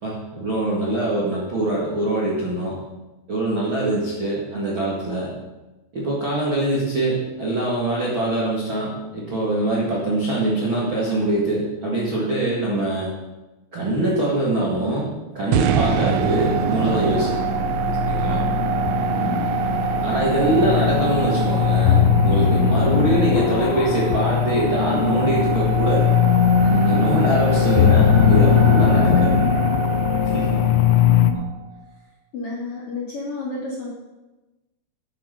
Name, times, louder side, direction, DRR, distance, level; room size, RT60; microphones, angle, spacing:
voice 1, 0.0-2.8 3.3-5.3 5.9-13.1 13.7-15.1 15.3-17.3 18.0-18.4 20.0-26.1 26.6-29.4 30.3-30.6, right 2 dB, 45° right, -5 dB, 1.6 m, -23 dB
sound 1, 15.5-31.7, right 8 dB, 80° right, 2.9 m, -26 dB
sound 2, 15.6-31.3, left 8 dB, 80° left, 2.7 m, -20 dB
voice 2, 18.5-19.5 31.0-31.4 32.3-33.9, left 2 dB, 45° left, -4 dB, 2.2 m, -32 dB
10.5 x 8.8 x 6.6 m, 1.1 s
omnidirectional pair, 5.8 m